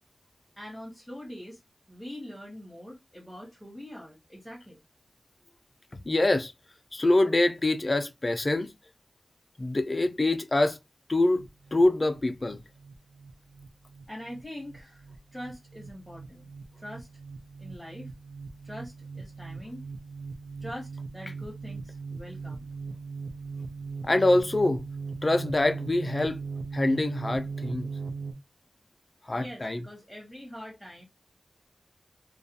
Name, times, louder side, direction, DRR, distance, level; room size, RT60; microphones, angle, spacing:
voice 1, 0.6-1.6 1.9-4.8 14.1-15.1 15.3-16.5 16.8-17.1 17.6-18.1 18.6-19.8 20.6-22.7 29.3-31.1, equal, 5° right, 1.0 m, -43 dB
voice 2, 6.1-6.5 6.9-8.7 9.6-10.8 11.1-11.4 11.7-12.6 24.0-24.8 25.2-26.4 26.7-27.9 29.3-29.8, left 2 dB, 35° left, 0.4 m, -25 dB
sound 1, 11.3-28.3, right 4 dB, 65° right, 0.5 m, -39 dB
2.3 x 2.2 x 2.6 m
wide cardioid pair, 100°, 0 cm